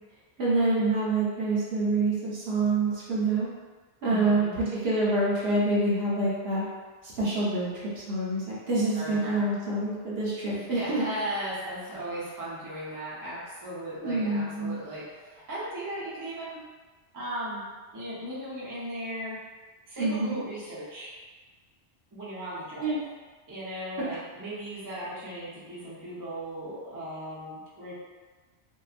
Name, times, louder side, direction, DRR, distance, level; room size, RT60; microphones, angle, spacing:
voice 1, 0.4-3.5 4.0-6.6 7.0-7.7 7.9-11.0 14.0-14.7 20.0-20.4 22.8-23.0, right 2 dB, 65° right, -7 dB, 1.0 m, -26 dB
voice 2, 4.1-4.6 8.9-9.5 10.5-16.6 17.1-17.6 17.9-19.4 19.9-21.1 22.1-23.0 23.5-27.9, right 1 dB, 20° right, -9 dB, 0.6 m, -37 dB
2.7 x 2.3 x 2.4 m, 1.3 s
omnidirectional pair, 1.1 m